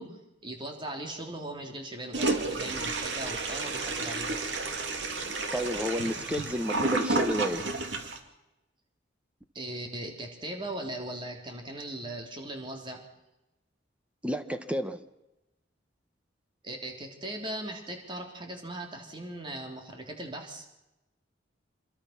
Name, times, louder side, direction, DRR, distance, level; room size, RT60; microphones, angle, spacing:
voice 1, 0.0-4.5 9.5-13.0 16.6-20.7, right 1 dB, 25° right, 3 dB, 3.4 m, -39 dB
Toilet flush, 2.1-8.2, right 3 dB, 75° right, 2.6 m, -31 dB
voice 2, 5.5-7.7 14.2-15.1, equal, 5° right, 9 dB, 1.1 m, -31 dB
26.5 x 22.5 x 6.0 m, 0.96 s
head